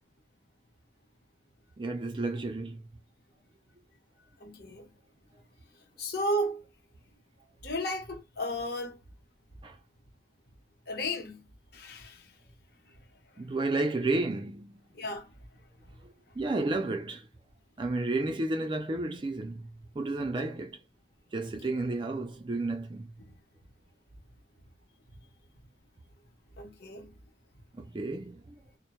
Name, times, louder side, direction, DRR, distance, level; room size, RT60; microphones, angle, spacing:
voice 1, 1.8-2.8 9.6-9.8 13.4-14.8 16.4-17.3 17.8-20.8 21.3-23.1 27.7-28.5, right 2 dB, 25° right, 0.3 m, -32 dB
voice 2, 4.4-4.9 6.0-6.6 7.6-9.0 10.9-11.5 11.7-12.4 12.9-13.0 13.3-13.4 14.9-15.3 15.8-15.9 21.5-21.7 23.3-23.4 26.6-27.2, equal, 55° left, 0.8 m, -34 dB
2.2 x 2.0 x 2.9 m
head